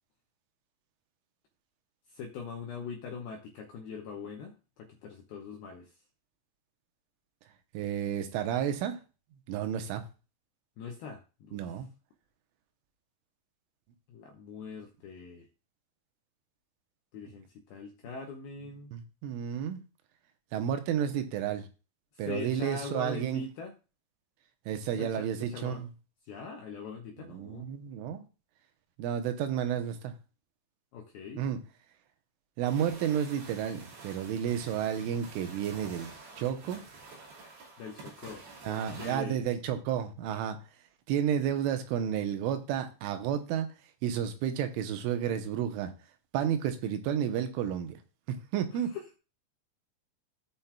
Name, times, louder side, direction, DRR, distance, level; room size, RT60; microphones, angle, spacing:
voice 1, 2.1-5.9 10.8-11.8 14.1-15.5 17.1-18.9 22.2-23.7 25.0-25.8 26.3-27.6 30.9-31.4 37.8-39.4 48.9-49.0, left 5 dB, 80° left, 2 dB, 2.2 m, -42 dB
voice 2, 7.8-9.0 9.5-10.0 11.5-11.9 18.9-19.8 20.5-21.7 22.2-23.4 24.7-25.9 27.2-28.3 29.0-30.1 31.4-31.6 32.6-36.1 36.4-36.8 38.6-40.6 41.1-43.7 44.0-45.9 46.3-48.0 48.3-48.9, right 9 dB, 85° right, 7 dB, 3.5 m, -31 dB
sound 1, 32.7-39.2, right 3 dB, 60° right, 4.4 m, -49 dB
17.5 x 5.8 x 2.3 m, 0.33 s
omnidirectional pair, 5.5 m